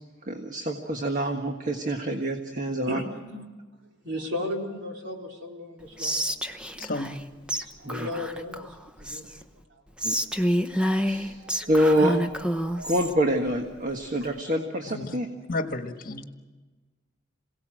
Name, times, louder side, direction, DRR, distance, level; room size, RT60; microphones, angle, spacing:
voice 1, 0.3-3.0 7.8-8.1 10.0-10.2 11.1-12.2 12.8-15.3, right 1 dB, 40° right, 3 dB, 1.7 m, -26 dB
voice 2, 2.9-3.4 4.0-6.3 6.8-6.9 7.5-8.7 9.0-9.2 10.3-10.4 11.4-11.7 12.7-12.9, left 1 dB, 65° right, 1 dB, 4.0 m, -35 dB
Whispering, 6.0-7.2 7.5-7.6 7.9-9.4 10.0-13.1, equal, 5° right, 0.9 m, -28 dB
voice 3, 6.8-7.2 14.9-15.2 15.5-16.3, left 2 dB, 50° left, 6 dB, 1.6 m, -32 dB
27.0 x 17.5 x 7.7 m, 1.3 s
head